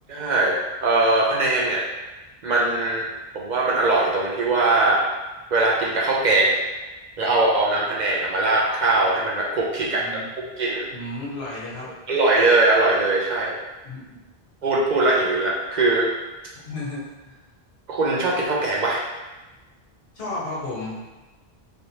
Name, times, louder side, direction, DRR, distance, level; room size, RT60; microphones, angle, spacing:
voice 1, 0.1-1.8 2.4-3.1 3.3-5.1 5.5-6.6 7.2-10.0 10.6-10.9 12.1-13.6 14.6-16.1 17.9-19.0, right 2 dB, 55° right, -3 dB, 0.6 m, -21 dB
voice 2, 9.9-10.2 10.9-11.9 13.8-14.2 16.6-17.4 20.1-21.0, left 2 dB, 70° left, -7 dB, 1.3 m, -33 dB
3.2 x 3.0 x 2.7 m, 1.1 s
omnidirectional pair, 1.0 m